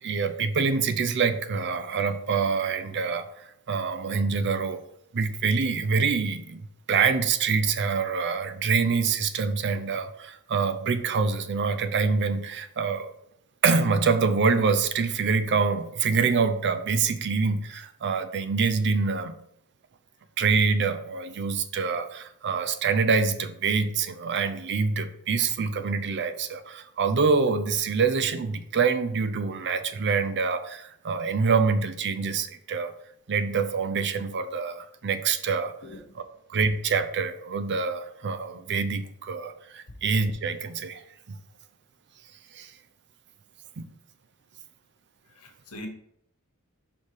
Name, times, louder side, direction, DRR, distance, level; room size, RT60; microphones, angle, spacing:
voice 1, 0.0-4.8 5.1-13.1 13.6-19.3 20.4-32.9 33.3-35.7 36.5-41.0 41.3-41.4 42.5-42.7 43.8-43.9, right 5 dB, 50° right, 10 dB, 0.6 m, -26 dB
voice 2, 45.3-45.9, left 1 dB, 80° left, 3 dB, 1.3 m, -42 dB
5.4 x 4.5 x 4.8 m, 0.74 s
head